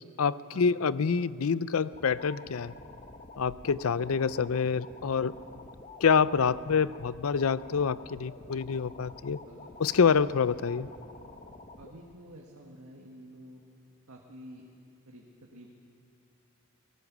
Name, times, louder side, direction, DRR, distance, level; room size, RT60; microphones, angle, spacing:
voice 1, 0.2-2.7 3.4-5.3 6.0-9.4 9.8-10.9, left 6 dB, 75° left, 17 dB, 0.5 m, -26 dB
sound 1, 1.9-11.9, left 2 dB, 35° left, 1.2 m, -49 dB
voice 2, 11.8-13.6 14.1-14.7 15.1-15.7, equal, 85° right, 0 dB, 1.7 m, -49 dB
22.5 x 19.0 x 6.1 m, 2.5 s
head